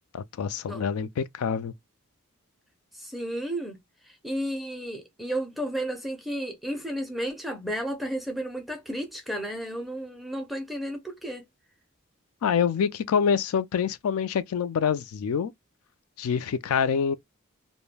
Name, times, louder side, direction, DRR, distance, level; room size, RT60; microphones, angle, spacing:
voice 1, 0.1-1.7 12.4-15.5 16.2-17.1, left 7 dB, 85° left, 0.3 m, -26 dB
voice 2, 2.9-11.5, equal, ahead, 0.4 m, -33 dB
2.2 x 2.1 x 3.1 m
head